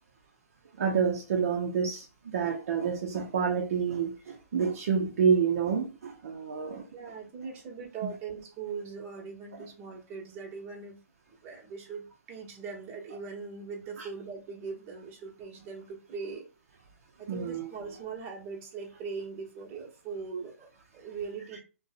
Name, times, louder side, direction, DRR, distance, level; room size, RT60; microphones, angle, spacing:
voice 1, 0.8-6.8 14.0-14.1 17.3-17.7 21.5-21.6, right 6 dB, 60° right, 0.5 m, -28 dB
voice 2, 6.9-11.0 11.4-16.4 17.2-21.6, right 5 dB, 25° right, 0.8 m, -40 dB
2.6 x 2.0 x 2.4 m
hypercardioid pair, 140°, 8 cm